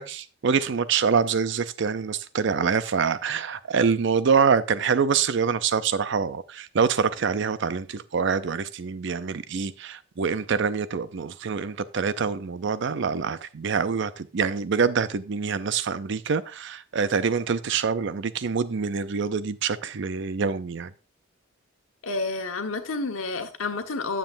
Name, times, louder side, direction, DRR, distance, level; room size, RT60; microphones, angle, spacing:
voice 1, 0.0-20.9, right 6 dB, 65° right, 0.5 m, -25 dB
voice 2, 22.0-24.2, left 3 dB, 90° left, 1.3 m, -29 dB
9.2 x 7.6 x 2.6 m
head